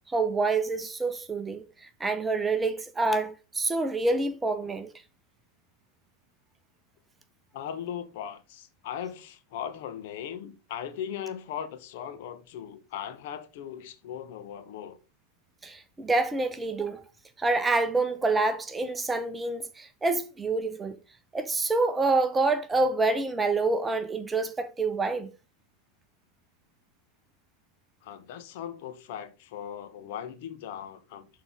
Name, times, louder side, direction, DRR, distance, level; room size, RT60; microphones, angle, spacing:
voice 1, 0.1-4.9 15.6-17.0 17.4-21.0 21.3-25.3, right 3 dB, 15° right, 0.8 m, -27 dB
voice 2, 7.5-15.0 28.0-31.3, left 9 dB, 50° left, 1.0 m, -38 dB
11.0 x 3.8 x 3.6 m
figure-of-eight pair, 90°, 0 cm